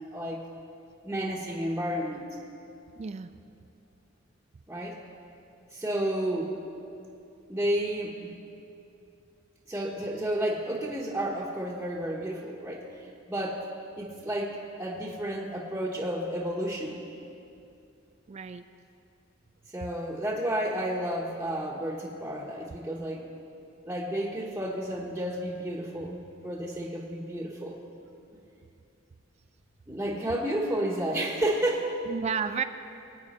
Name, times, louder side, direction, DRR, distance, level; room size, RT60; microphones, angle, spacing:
voice 1, 0.1-0.4 1.0-2.3 4.7-5.0 5.7-6.5 7.5-8.3 9.7-12.8 13.3-13.6 14.0-17.0 19.7-23.3 23.8-26.2 26.4-27.8 29.9-31.9, right 1 dB, 10° right, -5 dB, 1.1 m, -31 dB
voice 2, 3.0-3.3 18.3-18.6 32.1-32.6, right 6 dB, 35° right, 10 dB, 0.3 m, -31 dB
21.0 x 8.9 x 4.3 m, 2.6 s
head